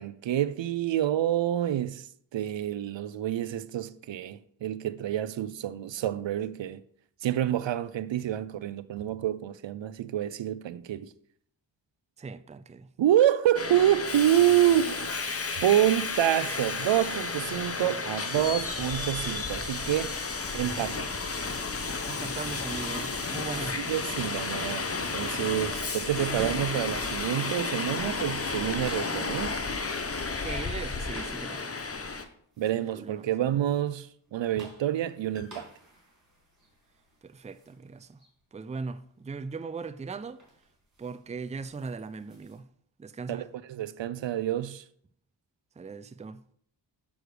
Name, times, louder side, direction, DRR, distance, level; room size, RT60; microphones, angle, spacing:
voice 1, 0.0-2.1 2.3-6.8 7.2-11.1 13.0-15.2 15.6-20.2 20.5-21.1 23.7-29.6 32.6-35.7 43.3-44.8, right 12 dB, 70° right, 0.6 m, -27 dB
voice 2, 12.2-12.9 22.1-23.8 30.4-31.7 32.9-33.3 37.2-38.2 38.5-40.4 41.0-42.6 43.0-43.5 45.8-46.4, right 4 dB, 15° right, 0.4 m, -39 dB
Subway metro underground, 13.5-32.2, left 4 dB, 30° left, 0.9 m, -32 dB
sound 1, 26.2-27.0 27.3-30.0 31.1-31.5 32.6-33.0 34.3-37.7 38.2-38.3 39.8-40.1 40.4-40.6 41.0-41.2 41.5-42.6, right 1 dB, 40° right, 3.6 m, -46 dB
6.4 x 6.4 x 5.0 m
cardioid pair, 50°, 46 cm